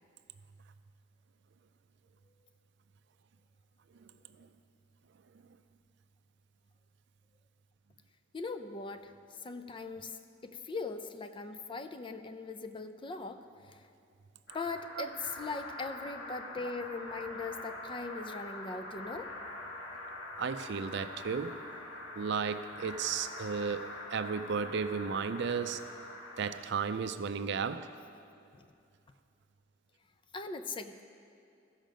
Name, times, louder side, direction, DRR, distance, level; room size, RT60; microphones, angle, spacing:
voice 1, 8.3-9.1 9.4-13.4 13.7-13.8 14.5-19.3 28.5-28.7 30.3-31.0, left 3 dB, 25° left, 9 dB, 0.4 m, -40 dB
sound 1, 14.5-26.5, left 2 dB, 85° left, 1.7 m, -44 dB
voice 2, 20.4-21.6 22.2-25.8 26.4-27.9, right 6 dB, 65° right, 11 dB, 0.4 m, -34 dB
14.5 x 6.4 x 5.1 m, 2.5 s
head